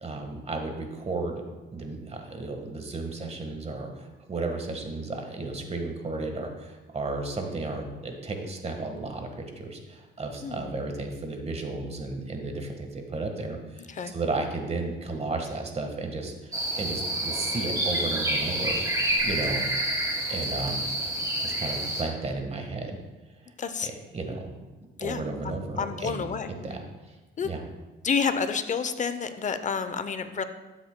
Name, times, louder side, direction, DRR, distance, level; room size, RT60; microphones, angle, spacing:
voice 1, 0.0-1.4 1.7-16.5 16.8-18.8 19.2-19.7 20.3-21.0 21.4-23.0 23.8-24.5 25.0-26.3 26.6-26.8 27.4-27.6, right 3 dB, 30° right, 4 dB, 1.5 m, -33 dB
voice 2, 10.4-10.8 14.0-14.1 23.6-23.9 25.0-26.5 27.4-27.5 28.0-30.4, left 6 dB, 40° left, 10 dB, 0.7 m, -29 dB
sound 1, 16.5-22.0, right 1 dB, 15° right, 2.2 m, -28 dB
12.5 x 7.9 x 2.2 m, 1.2 s
cardioid pair, 90°, 20 cm